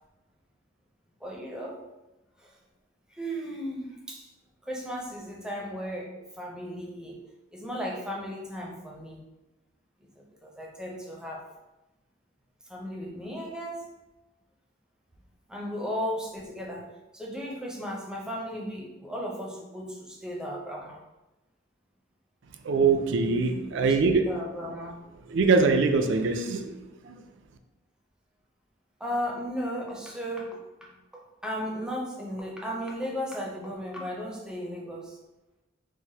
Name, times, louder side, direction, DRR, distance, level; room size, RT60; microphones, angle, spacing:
voice 1, 1.2-1.8 2.4-2.6 3.1-4.3 4.6-7.1 7.5-9.2 10.2-11.4 12.7-13.9 15.5-16.8 17.1-21.0 23.7-25.0 29.0-35.2, equal, 5° right, -2 dB, 0.6 m, -35 dB
voice 2, 22.6-24.2 25.3-26.7 27.1-27.2, right 4 dB, 65° right, 6 dB, 0.4 m, -23 dB
4.6 x 2.1 x 2.7 m, 1.0 s
head